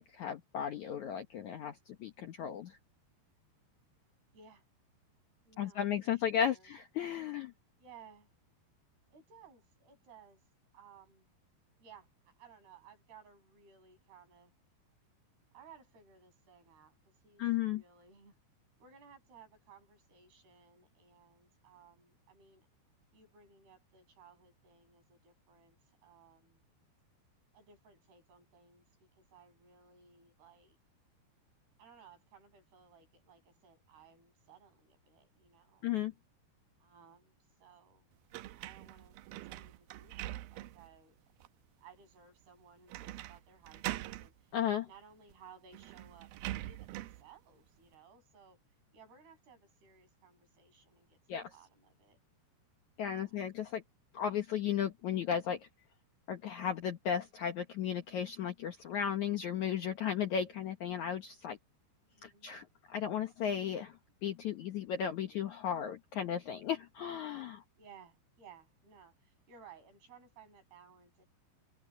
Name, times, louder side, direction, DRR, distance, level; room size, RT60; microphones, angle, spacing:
voice 1, 0.0-2.8 5.6-7.5 17.4-17.8 35.8-36.1 44.5-44.9 51.3-51.5 53.0-53.8 54.1-55.6 56.3-61.6 62.2-64.0 64.2-67.6, left 9 dB, 75° left, 1.7 m, -35 dB
voice 2, 4.3-4.6 5.4-6.7 7.8-8.3 9.1-10.4 10.7-11.3 11.8-14.5 15.5-18.4 18.8-22.7 23.1-26.6 27.5-28.8 29.1-30.8 31.8-35.9 36.8-38.1 38.6-41.2 41.8-44.3 44.8-48.6 48.9-51.2 51.5-52.2 53.0-53.4 62.2-62.5 67.8-71.3, right 6 dB, 60° right, 10.0 m, -59 dB
sound 1, 38.3-40.9 41.4-41.5 42.9-43.4 43.6-44.3 45.3-45.4 45.7-47.2, right 15 dB, 85° right, 2.2 m, -43 dB
omnidirectional pair, 5.1 m